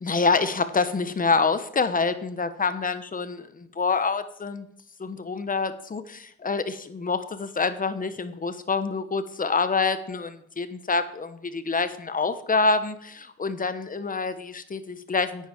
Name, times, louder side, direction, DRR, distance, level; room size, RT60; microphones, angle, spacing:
voice 1, 0.0-4.7 5.0-15.5, left 4 dB, 30° left, 12 dB, 1.1 m, -26 dB
10.5 x 9.0 x 5.1 m, 0.71 s
cardioid pair, 90°, 30 cm